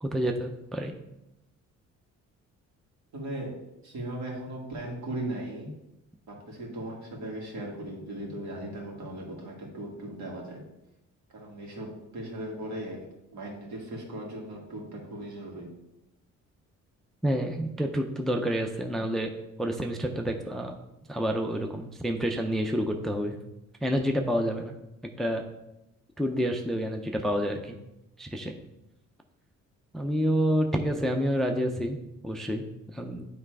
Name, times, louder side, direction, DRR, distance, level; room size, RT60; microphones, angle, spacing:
voice 1, 0.0-0.9 17.2-19.3 19.6-20.8 21.1-23.4 23.8-24.8 25.2-25.4 26.2-27.8 28.2-28.5 29.9-32.0 32.2-32.6 32.9-33.2, equal, ahead, 4 dB, 0.4 m, -28 dB
voice 2, 3.1-3.5 3.8-5.7 6.3-10.6 11.3-13.1 13.3-15.7, right 1 dB, 70° right, -1 dB, 2.0 m, -38 dB
8.8 x 3.3 x 4.7 m, 0.91 s
cardioid pair, 140°, 30 cm